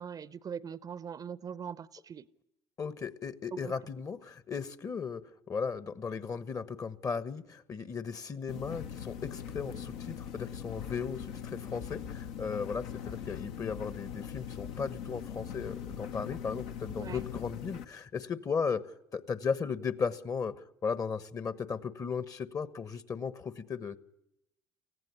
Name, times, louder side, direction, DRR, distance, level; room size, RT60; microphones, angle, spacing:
voice 1, 0.0-2.3 3.6-3.7 16.9-17.2, right 7 dB, 40° right, 0.7 m, -41 dB
voice 2, 2.8-5.2 5.5-18.8 19.1-24.0, left 5 dB, 35° left, 1.2 m, -36 dB
sound 1, 8.5-17.9, left 8 dB, 70° left, 1.0 m, -41 dB
19.0 x 15.0 x 9.9 m
hypercardioid pair, 60°, 10 cm